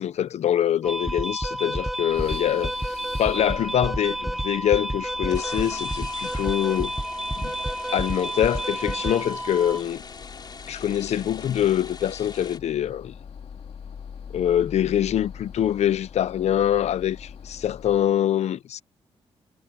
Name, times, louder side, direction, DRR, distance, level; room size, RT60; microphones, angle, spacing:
voice 1, 0.0-6.9 7.4-7.5 7.9-10.0 10.7-13.1 14.3-18.8, left 10 dB, 80° left, 0.7 m, -24 dB
sound 1, 0.8-9.8, equal, ahead, 0.3 m, -30 dB
sound 2, 2.1-18.2, left 7 dB, 65° left, 2.1 m, -44 dB
sound 3, 5.3-12.6, left 5 dB, 40° left, 3.8 m, -42 dB
cardioid pair, 110°, 11 cm